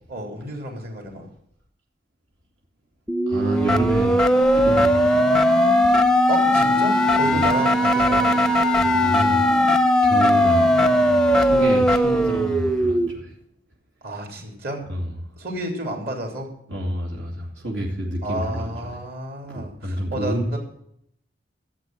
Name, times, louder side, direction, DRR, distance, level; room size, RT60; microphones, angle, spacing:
voice 1, 0.1-1.2 6.3-8.4 10.2-10.4 14.0-14.8 15.4-16.5 18.2-20.6, right 1 dB, 55° right, 1 dB, 3.2 m, -31 dB
sound 1, 3.1-13.1, equal, 5° left, 0.7 m, -18 dB
voice 2, 3.3-4.1 4.5-5.2 7.2-7.4 8.8-9.5 10.0-10.7 11.2-13.3 14.9-15.1 16.7-18.7 19.5-20.5, equal, 80° right, -2 dB, 2.4 m, -28 dB
12.0 x 8.4 x 7.5 m, 0.72 s
head